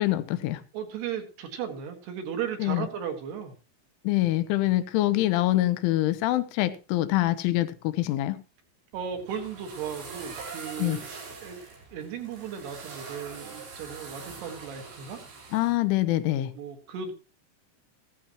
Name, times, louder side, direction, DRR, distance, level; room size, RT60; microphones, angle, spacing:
voice 1, 0.0-0.6 2.6-2.9 4.0-8.4 10.8-11.0 15.5-16.5, left 16 dB, 80° left, 3.1 m, -25 dB
voice 2, 0.7-3.5 8.9-11.1 11.4-11.6 11.9-15.2 16.5-17.1, right 7 dB, 65° right, 3.2 m, -36 dB
sound 1, 8.9-15.8, right 5 dB, 80° right, 7.1 m, -43 dB
16.0 x 15.0 x 3.0 m
omnidirectional pair, 5.9 m